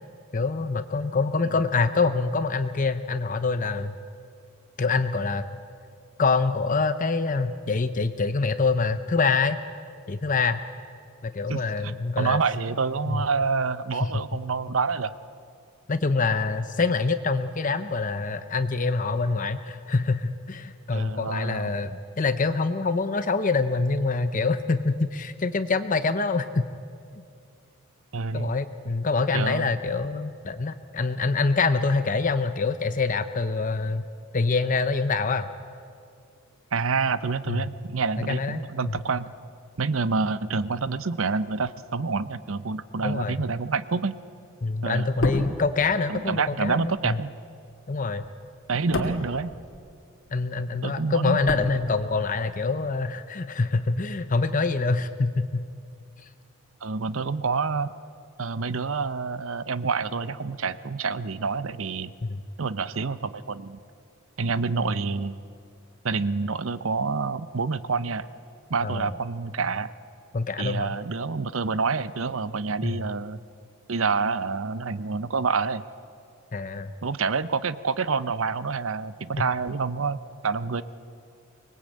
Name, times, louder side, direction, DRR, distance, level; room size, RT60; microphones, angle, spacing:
voice 1, 0.3-4.0 4.8-5.5 6.2-9.6 10.1-10.6 11.2-12.4 13.1-13.2 14.0-14.2 15.9-26.6 28.3-34.0 34.3-35.5 37.5-37.7 38.3-39.0 43.0-43.4 44.6-47.2 47.9-48.2 50.3-55.6 62.2-62.4 68.8-69.1 70.3-70.9 72.8-73.0 76.5-76.9 79.4-79.5, left 4 dB, 40° left, 10 dB, 0.7 m, -25 dB
voice 2, 11.5-11.9 12.2-15.1 20.9-21.8 28.1-28.5 29.3-29.7 36.7-39.3 39.8-44.2 44.8-45.1 46.1-47.3 48.7-49.5 50.8-51.4 56.8-57.9 58.4-62.1 62.6-63.8 64.4-65.4 66.0-68.3 68.7-69.9 70.6-73.4 73.9-75.8 77.0-80.2 80.4-80.8, right 4 dB, 70° right, 15 dB, 0.8 m, -27 dB
sound 1, 45.0-50.3 50.6-52.4 52.7-52.9, left 1 dB, 65° left, 2.4 m, -34 dB
24.0 x 20.5 x 8.7 m, 2.3 s
head